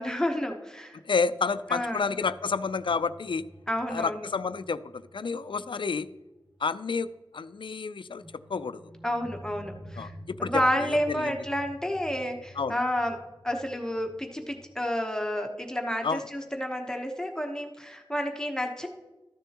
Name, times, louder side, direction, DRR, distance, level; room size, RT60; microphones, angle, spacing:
voice 1, 0.0-1.0 1.7-2.1 3.7-4.3 9.0-10.1 10.4-13.2 13.4-18.9, equal, 5° left, 2 dB, 0.9 m, -30 dB
voice 2, 1.0-3.4 3.9-6.1 6.6-8.2 8.5-8.8 10.0-11.3 12.6-12.7 16.0-16.2, left 5 dB, 75° left, 14 dB, 0.4 m, -30 dB
sound 1, 1.2-6.6 6.9-7.0 8.2-14.8, equal, 25° right, 2.2 m, -49 dB
13.0 x 6.9 x 2.9 m, 1.1 s
wide cardioid pair, 70°, 9 cm